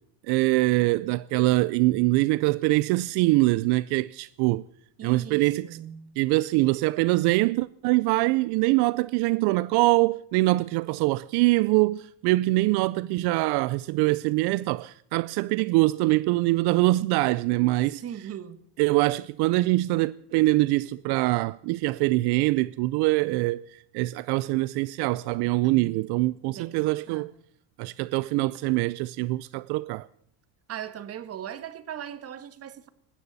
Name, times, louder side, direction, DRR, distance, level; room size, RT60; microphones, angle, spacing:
voice 1, 0.3-4.7 5.0-5.7 6.2-18.0 18.8-27.3 27.8-30.1, right 20 dB, 75° right, 0.5 m, -24 dB
voice 2, 5.0-6.2 12.6-13.4 18.0-18.6 25.6-26.0 26.5-27.4 30.7-32.9, right 9 dB, 35° right, 1.4 m, -40 dB
19.5 x 16.5 x 4.1 m
cardioid pair, 145°, 40 cm